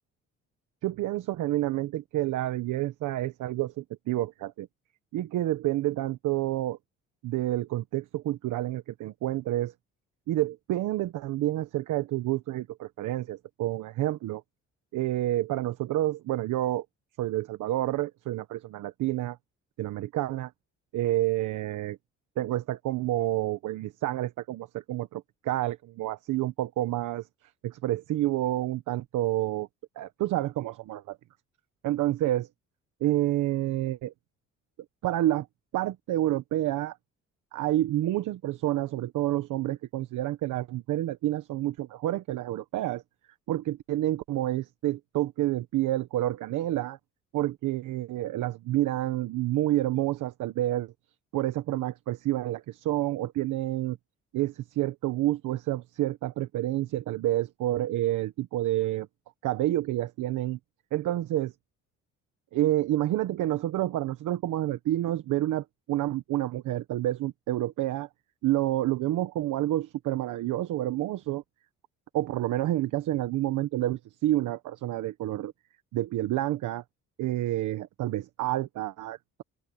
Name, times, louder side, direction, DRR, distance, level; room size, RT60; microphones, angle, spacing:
voice 1, 0.8-4.7 5.1-6.8 7.2-9.7 10.3-14.4 14.9-16.8 17.2-19.4 19.8-20.5 20.9-22.0 22.4-27.3 27.6-29.7 30.0-31.2 31.8-32.5 33.0-34.1 35.0-35.5 35.7-37.0 37.5-43.0 43.5-47.0 47.3-50.9 51.3-54.0 54.3-59.1 59.4-60.6 60.9-61.5 62.5-68.1 68.4-71.4 72.1-75.5 75.9-76.8 77.2-79.4, right 15 dB, 85° right, 1.2 m, -29 dB
open air
cardioid pair, 90°, 30 cm